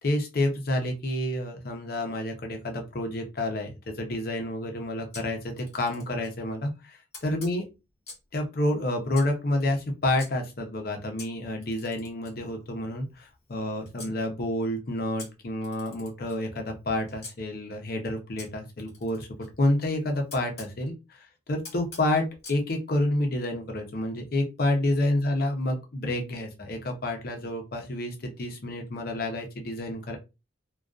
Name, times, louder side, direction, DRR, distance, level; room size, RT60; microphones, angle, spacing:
voice 1, 0.0-7.6 8.3-30.2, left 1 dB, 50° left, 3 dB, 0.6 m, -29 dB
Camera, 5.1-6.4 7.1-8.4 9.1-10.3 11.2-14.1 15.2-17.3 18.4-20.7 21.6-22.6, left 3 dB, 35° left, 1.1 m, -48 dB
2.4 x 2.2 x 2.3 m, 0.27 s
head